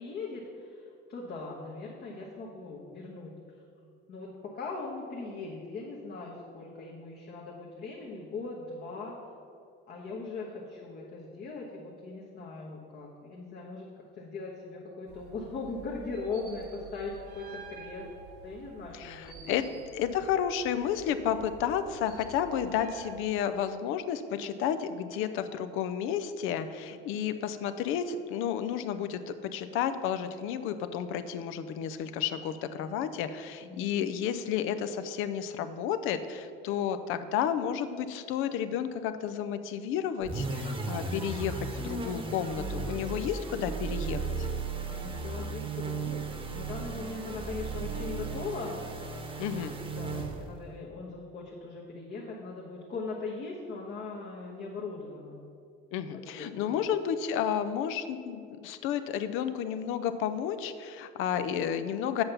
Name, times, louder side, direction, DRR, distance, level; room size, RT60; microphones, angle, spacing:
voice 1, 0.0-3.4 3.8-9.2 9.9-18.1 18.4-19.6 33.7-34.0 44.9-48.9 49.5-49.7 50.0-55.4 56.1-56.8, left 3 dB, 50° left, -3 dB, 1.2 m, -40 dB
sound 1, 15.1-23.2, right 5 dB, 50° right, 0.9 m, -50 dB
voice 2, 18.9-19.6 19.9-44.5 49.4-49.7 55.9-62.2, left 9 dB, 75° left, 10 dB, 0.6 m, -32 dB
sound 2, 40.2-50.6, right 4 dB, 25° right, 1.0 m, -35 dB
7.9 x 5.6 x 6.7 m, 2.4 s
cardioid pair, 145°, 21 cm